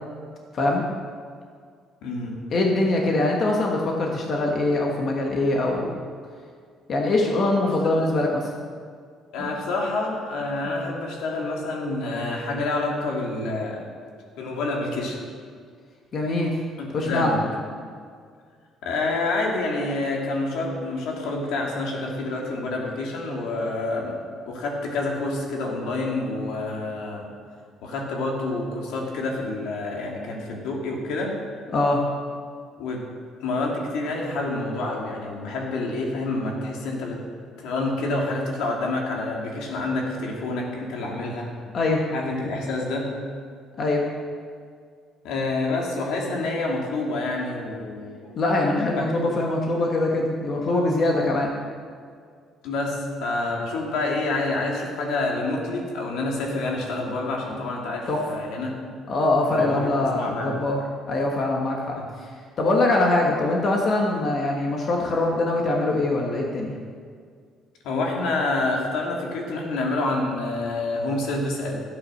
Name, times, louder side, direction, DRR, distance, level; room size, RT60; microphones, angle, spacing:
voice 1, 0.5-0.8 2.5-5.9 6.9-8.5 9.4-9.5 16.1-16.6 16.9-17.3 31.7-32.1 41.7-42.1 43.8-44.1 48.4-51.5 58.1-58.3 59.1-60.8 61.1-62.3 62.6-66.7, left 2 dB, 35° left, -1 dB, 1.3 m, -23 dB
voice 2, 2.0-2.4 7.7-8.0 9.3-13.8 14.4-15.2 16.8-17.5 18.8-24.1 24.5-27.2 27.8-31.4 32.8-33.1 33.4-37.2 37.6-41.5 42.1-43.1 45.2-48.4 49.0-49.1 52.6-58.7 59.5-60.6 62.0-62.1 67.8-71.8, left 2 dB, 85° left, -1 dB, 2.8 m, -28 dB
14.0 x 8.5 x 6.4 m, 2.1 s
cardioid pair, 170°, 0 cm